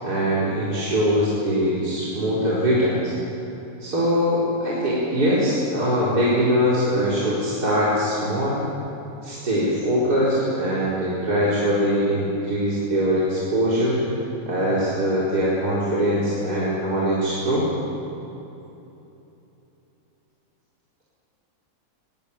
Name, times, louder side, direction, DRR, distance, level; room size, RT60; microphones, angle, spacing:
voice 1, 0.0-3.1 3.8-8.6 9.2-14.1 14.5-17.7, equal, 45° right, -9 dB, 4.9 m, -22 dB
22.0 x 18.5 x 8.7 m, 3.0 s
omnidirectional pair, 2.4 m